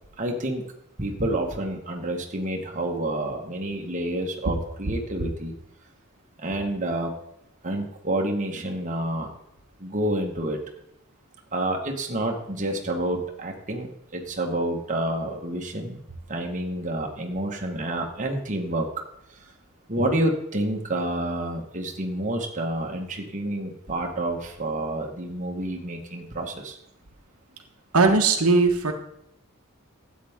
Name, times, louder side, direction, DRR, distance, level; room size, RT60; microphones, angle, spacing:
voice 1, 0.2-0.6 1.0-5.5 6.4-7.1 7.6-9.3 9.8-10.6 11.5-16.0 16.3-18.9 19.9-26.8, right 1 dB, 35° right, 1 dB, 1.6 m, -28 dB
voice 2, 27.9-28.9, right 3 dB, 80° right, 4 dB, 1.3 m, -19 dB
12.5 x 8.6 x 3.7 m, 0.78 s
head